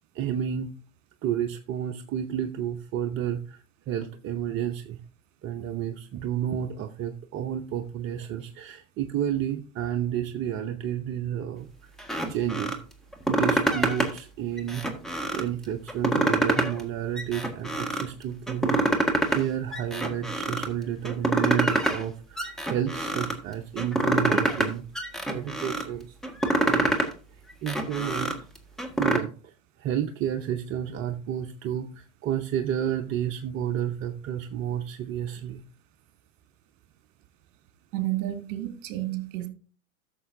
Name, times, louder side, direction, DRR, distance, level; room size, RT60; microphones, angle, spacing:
voice 1, 0.1-0.7 1.2-5.0 5.4-11.9 12.3-12.7 13.3-14.9 15.3-24.9 25.3-26.1 26.7-27.1 27.6-28.4 29.0-29.5 29.8-35.6, right 10 dB, 35° right, 0.8 m, -31 dB
sound 1, 12.0-12.8 13.1-14.2 14.6-15.5 15.9-16.8 17.2-18.1 18.5-19.4 19.7-20.7 21.0-22.0 22.4-23.3 23.8-24.7 24.9-25.8 26.2-27.1 27.5-29.2, right 1 dB, ahead, 1.5 m, -26 dB
voice 2, 37.9-39.5, right 15 dB, 50° right, 2.2 m, -31 dB
13.5 x 6.8 x 2.6 m
hypercardioid pair, 100°, 40 cm